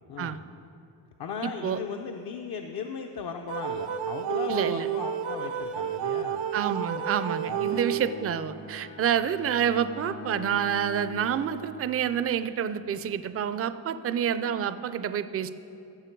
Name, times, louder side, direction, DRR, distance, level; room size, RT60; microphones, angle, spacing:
voice 1, 0.1-0.4 1.2-6.4 7.4-7.9, left 6 dB, 55° left, 3 dB, 0.7 m, -37 dB
voice 2, 1.4-1.8 4.5-4.9 6.5-15.5, right 8 dB, 35° right, 12 dB, 0.4 m, -28 dB
sound 1, 3.5-8.4, right 9 dB, 85° right, 0.6 m, -31 dB
Bowed string instrument, 6.9-12.7, left 2 dB, 75° left, 1.4 m, -43 dB
15.0 x 6.5 x 4.5 m, 2.7 s
cardioid pair, 85°, 46 cm